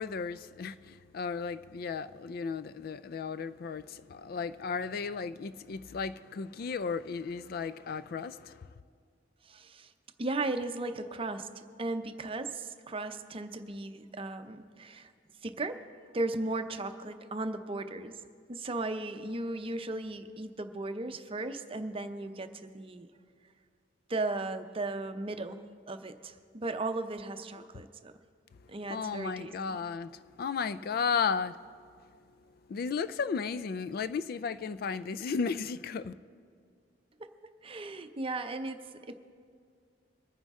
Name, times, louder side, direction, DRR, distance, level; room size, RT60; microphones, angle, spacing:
voice 1, 0.0-8.7 28.9-31.6 32.7-36.1, left 5 dB, 55° left, 0.4 m, -34 dB
voice 2, 9.4-9.9 10.2-11.5 11.8-15.1 15.4-15.8 16.1-18.1 18.5-23.1 24.1-28.1 28.7-29.8 37.2-37.3 37.6-38.8 39.1-39.2, right 2 dB, 30° right, 0.6 m, -36 dB
23.0 x 9.5 x 3.6 m
head